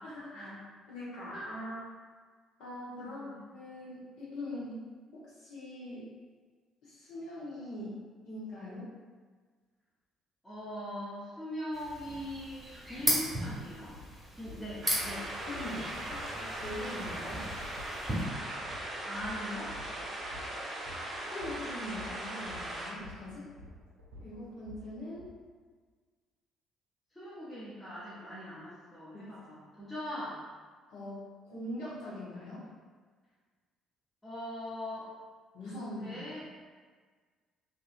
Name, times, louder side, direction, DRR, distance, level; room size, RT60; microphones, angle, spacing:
voice 1, 0.0-0.6 0.9-1.8 2.6-4.8 5.1-6.1 6.8-8.0 8.2-8.9 15.5-17.5 21.3-23.5 24.2-25.3 29.1-29.3 30.9-32.7 35.5-36.2, left 1 dB, 60° left, -8 dB, 1.0 m, -42 dB
voice 2, 3.1-3.4 10.4-13.9 14.4-15.3 19.0-19.7 27.1-30.4 34.2-35.1 36.0-36.5, equal, 10° left, -11 dB, 0.8 m, -41 dB
sound 1, 11.7-18.2, equal, 10° right, 1.1 m, -37 dB
sound 2, 13.9-25.3, left 1 dB, 80° right, 0.4 m, -51 dB
sound 3, 14.8-22.9, right 1 dB, 35° right, 0.6 m, -39 dB
2.9 x 2.4 x 2.5 m, 1.5 s
figure-of-eight pair, 50°, 0 cm